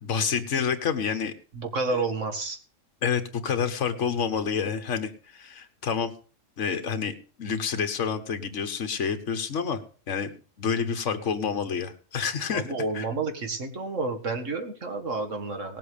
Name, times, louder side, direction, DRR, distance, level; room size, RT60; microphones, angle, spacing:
voice 1, 0.0-1.3 3.0-6.1 6.6-9.8 10.1-10.3 10.6-12.6 12.9-13.1, left 6 dB, 65° left, 7 dB, 1.6 m, -28 dB
voice 2, 1.5-2.6 12.5-15.8, right 3 dB, 70° right, 6 dB, 2.2 m, -30 dB
18.0 x 7.8 x 5.0 m, 0.40 s
omnidirectional pair, 1.4 m